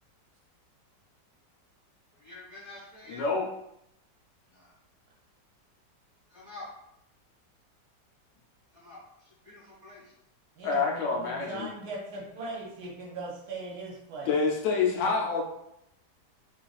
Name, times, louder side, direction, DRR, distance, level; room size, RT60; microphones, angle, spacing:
voice 1, 2.1-3.2 4.5-4.7 6.3-6.7 8.7-10.1, left 2 dB, 30° right, -8 dB, 0.9 m, -48 dB
voice 2, 3.1-3.5 10.6-11.7 14.3-15.4, left 4 dB, 85° left, 0 dB, 1.3 m, -27 dB
voice 3, 10.6-14.3, right 3 dB, 70° right, -3 dB, 1.1 m, -39 dB
3.1 x 2.5 x 2.3 m, 0.79 s
omnidirectional pair, 1.9 m